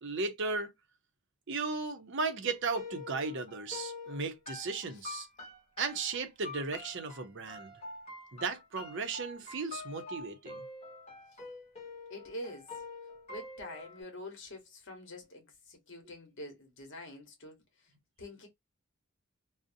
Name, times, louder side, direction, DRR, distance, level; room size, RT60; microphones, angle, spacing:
voice 1, 0.0-0.7 1.5-5.3 5.8-7.7 8.3-10.6, right 4 dB, 55° right, 0.6 m, -35 dB
sound 1, 2.4-14.0, left 3 dB, 30° left, 0.9 m, -46 dB
voice 2, 12.1-12.7 13.3-17.9 18.2-18.5, left 1 dB, 55° left, 1.0 m, -46 dB
2.6 x 2.0 x 2.5 m
head